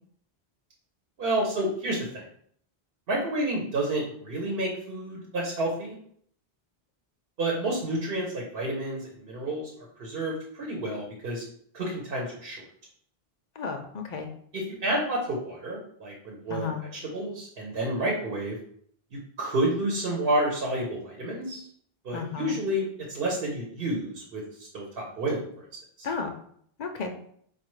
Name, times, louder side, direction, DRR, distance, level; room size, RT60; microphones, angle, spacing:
voice 1, 1.2-2.2 3.1-5.9 7.4-9.7 10.0-11.4 11.7-12.6 14.5-18.6 19.1-21.6 22.0-25.6 26.0-26.1, right 1 dB, 70° right, -1 dB, 1.0 m, -30 dB
voice 2, 13.6-14.3 16.5-16.8 22.1-22.6 26.0-26.3 26.8-27.1, left 5 dB, 55° left, 5 dB, 0.5 m, -33 dB
4.6 x 2.3 x 3.1 m, 0.63 s
omnidirectional pair, 1.0 m